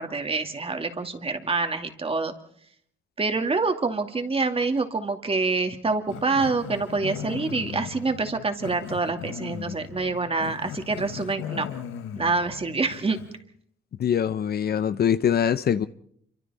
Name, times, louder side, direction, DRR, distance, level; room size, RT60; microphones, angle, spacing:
voice 1, 0.0-2.3 3.2-11.7 12.2-13.2, right 3 dB, 30° right, 2.5 m, -26 dB
Growling, 6.1-13.4, left 9 dB, 85° left, 1.4 m, -38 dB
voice 2, 14.0-15.9, left 8 dB, 50° left, 0.8 m, -23 dB
27.5 x 24.5 x 4.3 m
cardioid pair, 90°, 20 cm